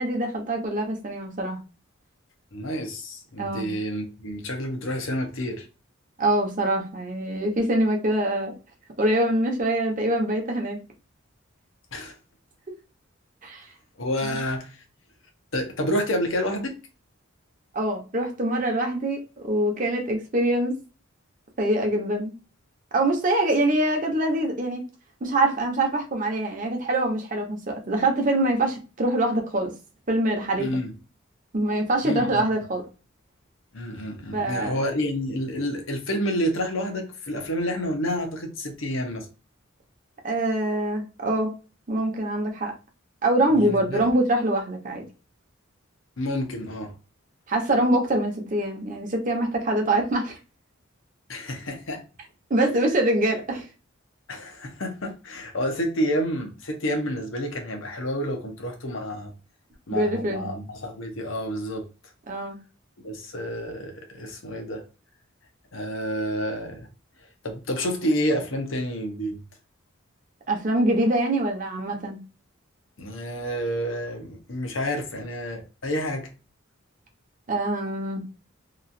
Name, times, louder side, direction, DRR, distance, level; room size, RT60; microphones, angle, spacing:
voice 1, 0.0-1.6 3.4-3.7 6.2-8.5 9.0-10.8 13.4-13.7 17.7-20.7 21.6-22.3 22.9-24.8 25.2-29.7 30.1-30.7 31.5-32.8 34.3-34.8 40.2-41.5 41.9-42.7 43.2-45.0 47.5-50.4 52.5-53.7 59.9-60.5 62.3-62.6 70.5-72.2 77.5-78.2, right 1 dB, 40° right, 0.8 m, -24 dB
voice 2, 2.5-5.7 11.9-12.1 14.0-14.8 15.5-16.8 30.6-30.9 32.0-32.5 33.7-39.3 43.5-44.0 46.2-46.9 51.3-52.0 54.3-59.3 59.9-61.9 63.0-64.8 65.7-66.9 67.4-69.4 73.0-76.3, equal, 65° left, 0.8 m, -29 dB
3.0 x 2.4 x 2.5 m
head